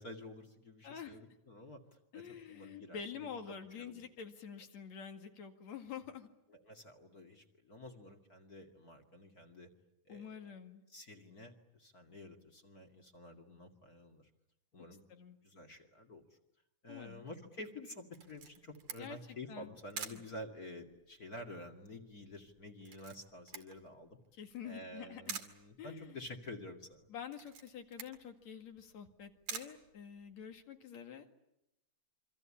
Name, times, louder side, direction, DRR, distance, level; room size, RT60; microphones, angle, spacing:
voice 1, 0.0-1.8 2.1-4.0 6.5-9.7 10.1-10.6 10.9-14.3 14.7-16.2 16.8-24.2 24.6-27.1, left 1 dB, 30° left, 3 dB, 2.4 m, -50 dB
voice 2, 0.8-1.2 2.1-6.3 10.1-10.8 15.1-15.4 16.9-17.2 19.0-19.8 20.1-20.2 24.3-25.4 25.8-26.2 27.1-31.3, left 7 dB, 65° left, 5 dB, 3.3 m, -47 dB
Camera, 18.1-30.6, right 7 dB, 70° right, 3.7 m, -50 dB
27.5 x 25.0 x 8.7 m, 0.87 s
omnidirectional pair, 3.4 m